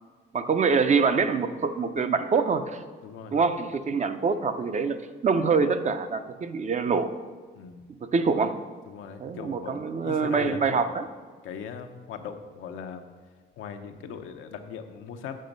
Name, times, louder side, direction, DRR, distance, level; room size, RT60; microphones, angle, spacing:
voice 1, 0.3-2.8 3.3-7.1 7.9-8.6 9.2-11.1, right 5 dB, 35° right, 10 dB, 0.6 m, -25 dB
voice 2, 3.0-3.4 7.6-7.8 8.9-10.9 11.4-13.0 13.6-15.3, left 7 dB, 90° left, 5 dB, 0.8 m, -39 dB
7.6 x 5.8 x 5.2 m, 1.5 s
cardioid pair, 90°, 20 cm